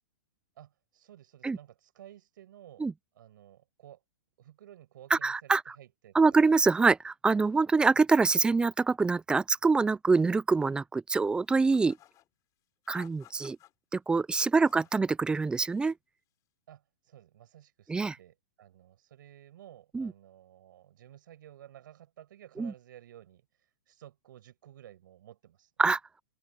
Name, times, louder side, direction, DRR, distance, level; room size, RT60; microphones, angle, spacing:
voice 1, 0.6-2.9 3.1-4.0 4.4-6.4 16.7-23.5 23.9-25.7, right 12 dB, 65° right, 6.8 m, -53 dB
voice 2, 5.1-5.6 6.1-12.0 12.9-13.6 13.9-15.9 17.9-18.1 19.9-20.1 22.6-22.7 25.8-26.0, right 4 dB, 10° right, 0.6 m, -25 dB
sound 1, 11.5-12.3 12.8-13.7 14.4-15.0 15.3-15.9, left 14 dB, 30° left, 4.6 m, -57 dB
open air
hypercardioid pair, 130°, 11 cm